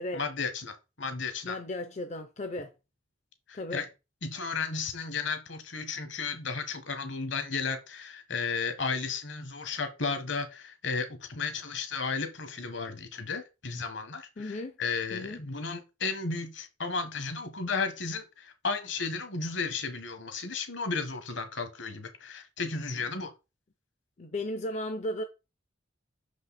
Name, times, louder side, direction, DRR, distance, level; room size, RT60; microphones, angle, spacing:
voice 1, 0.1-1.6 3.5-3.9 4.2-23.3, left 4 dB, 65° left, 1.4 m, -34 dB
voice 2, 1.4-2.7 3.5-3.9 14.4-14.8 15.1-15.4 24.2-25.2, left 1 dB, 35° left, 0.5 m, -35 dB
6.1 x 5.3 x 4.2 m
head